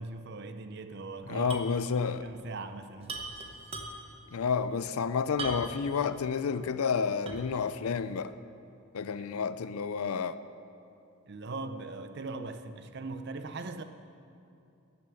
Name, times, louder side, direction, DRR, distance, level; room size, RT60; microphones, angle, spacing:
voice 1, 0.0-1.6 1.9-3.2 9.2-9.3 11.3-13.8, right 3 dB, 50° right, 0.6 m, -40 dB
voice 2, 1.3-2.3 4.3-8.3 8.9-10.4, left 6 dB, 75° left, 0.5 m, -30 dB
sound 1, 1.5-1.8 2.0-2.1 3.0-4.2 5.4-5.9 6.4-6.5 7.3-7.6, right 2 dB, 25° right, 1.0 m, -39 dB
12.0 x 7.0 x 7.7 m
head